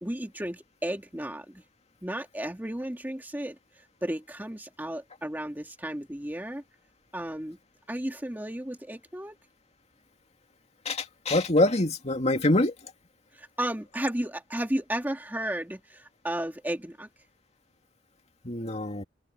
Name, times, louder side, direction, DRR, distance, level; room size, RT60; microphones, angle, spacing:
voice 1, 0.0-1.6 2.0-6.6 7.1-7.6 7.9-9.4 13.3-17.1, right 1 dB, 10° right, 1.7 m, -33 dB
voice 2, 10.8-12.7 18.4-19.0, left 2 dB, 35° left, 2.6 m, -25 dB
head